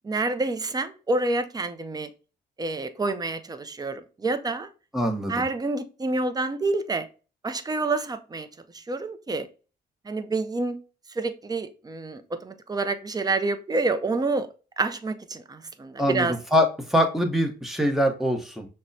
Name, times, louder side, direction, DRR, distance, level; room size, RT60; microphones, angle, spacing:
voice 1, 0.0-2.1 2.6-4.7 5.3-7.1 7.4-8.5 8.7-9.5 10.1-10.8 11.1-14.5 14.8-16.4, right 3 dB, 20° right, 0.5 m, -28 dB
voice 2, 4.9-5.3 16.0-18.7, equal, ahead, 0.9 m, -23 dB
6.0 x 2.1 x 2.6 m
cardioid pair, 90°, 20 cm